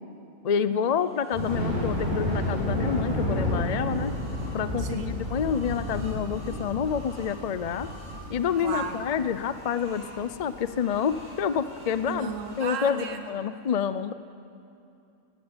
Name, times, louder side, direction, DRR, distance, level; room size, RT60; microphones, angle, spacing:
voice 1, 0.4-4.1 4.5-7.9 8.3-12.3 12.6-14.1, left 7 dB, 60° left, 13 dB, 0.4 m, -28 dB
sound 1, 0.8-1.6 3.0-4.6 5.1-9.0 9.3-10.2 10.6-12.0 12.3-12.9, equal, 90° right, 8.4 m, -49 dB
Thunder, 1.3-12.4, equal, 35° right, 7.4 m, -31 dB
voice 2, 4.8-5.3 8.6-9.0 12.1-13.2, right 5 dB, 65° right, 6 dB, 1.7 m, -34 dB
19.0 x 17.0 x 9.7 m, 2.6 s
omnidirectional pair, 1.4 m